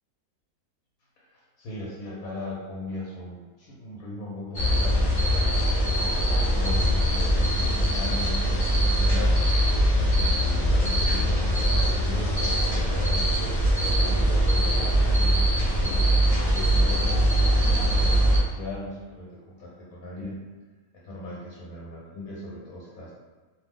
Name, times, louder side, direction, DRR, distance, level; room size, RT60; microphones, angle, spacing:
voice 1, 1.2-5.0 5.6-9.4 10.1-13.6 14.0-15.4 15.8-17.5 17.8-20.4 20.9-23.1, left 1 dB, 70° left, -6 dB, 1.1 m, -38 dB
sound 1, 4.5-18.4, equal, 45° left, 0.5 m, -22 dB
2.6 x 2.0 x 3.5 m, 1.3 s
omnidirectional pair, 1.6 m